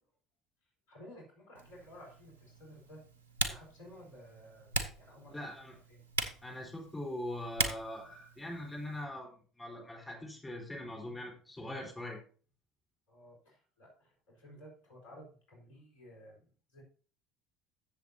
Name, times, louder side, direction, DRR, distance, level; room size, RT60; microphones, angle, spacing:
voice 1, 0.9-3.0 3.4-5.4 5.9-6.0 11.6-11.9 13.1-16.8, equal, 70° left, 0 dB, 4.5 m, -54 dB
Typing, 1.5-9.0, right 3 dB, 85° right, 0.9 m, -40 dB
voice 2, 5.3-5.7 6.4-12.2, left 1 dB, 15° left, -1 dB, 4.1 m, -42 dB
15.5 x 7.1 x 2.8 m, 0.40 s
figure-of-eight pair, 60°, 0 cm